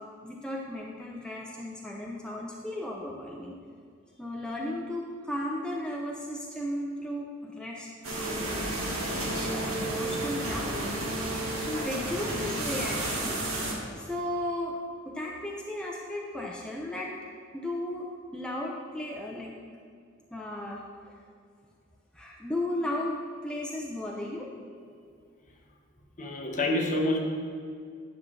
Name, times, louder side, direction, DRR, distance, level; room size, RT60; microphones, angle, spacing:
voice 1, 0.0-3.6 4.2-11.1 11.6-13.7 14.0-14.8 15.0-17.1 17.5-19.6 20.3-21.1 22.1-24.5, left 1 dB, 5° left, -3 dB, 0.5 m, -35 dB
sound 1, 8.0-13.7, right 1 dB, 80° right, 1.8 m, -31 dB
voice 2, 26.2-27.2, left 1 dB, 40° left, 1 dB, 0.9 m, -27 dB
10.0 x 6.0 x 3.2 m, 2.2 s
head